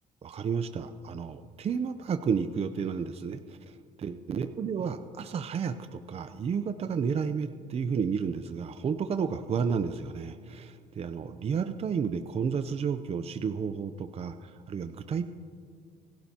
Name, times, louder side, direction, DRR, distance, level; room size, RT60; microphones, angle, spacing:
voice 1, 0.2-15.3, right 6 dB, 35° right, 9 dB, 0.6 m, -32 dB
28.0 x 11.5 x 2.9 m, 2.2 s
cardioid pair, 110°, 17 cm